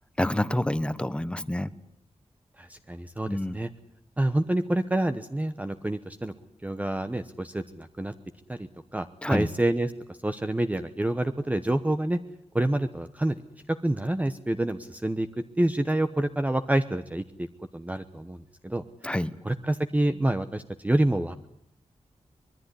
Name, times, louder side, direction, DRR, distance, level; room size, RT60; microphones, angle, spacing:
voice 1, 0.2-1.7 3.3-3.6 9.2-9.5 19.0-19.3, left 1 dB, 10° left, 15 dB, 1.1 m, -27 dB
voice 2, 2.6-3.7 4.2-6.3 6.6-8.1 8.5-12.2 12.5-13.4 13.7-15.3 15.6-17.5 17.7-19.2 19.4-21.5, right 1 dB, 10° right, 9 dB, 1.0 m, -27 dB
24.5 x 21.5 x 9.9 m, 0.70 s
wide cardioid pair, 155°, 12 cm